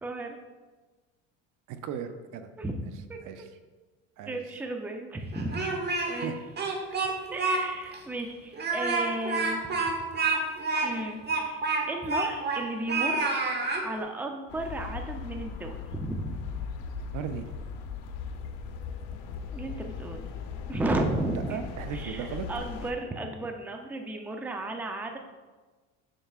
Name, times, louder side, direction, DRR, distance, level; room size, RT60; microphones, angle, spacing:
voice 1, 0.0-0.4 2.6-2.8 3.1-3.2 4.3-5.6 6.0-6.4 7.3-9.6 10.8-13.4 13.8-16.4 19.5-20.3 20.7-21.6 21.9-25.2, right 2 dB, 5° right, 4 dB, 0.5 m, -34 dB
voice 2, 1.7-2.5 3.2-3.5 4.2-4.4 6.1-6.4 17.1-17.5 21.5-22.5, right 8 dB, 55° right, 9 dB, 0.6 m, -36 dB
Speech, 5.3-6.3 6.6-7.6 7.9-8.0 8.5-12.6 12.9-13.8, right 3 dB, 30° right, 1.1 m, -28 dB
sound 1, 14.5-22.9, left 6 dB, 80° left, 0.8 m, -38 dB
7.4 x 6.7 x 2.4 m, 1.3 s
supercardioid pair, 105°, 36 cm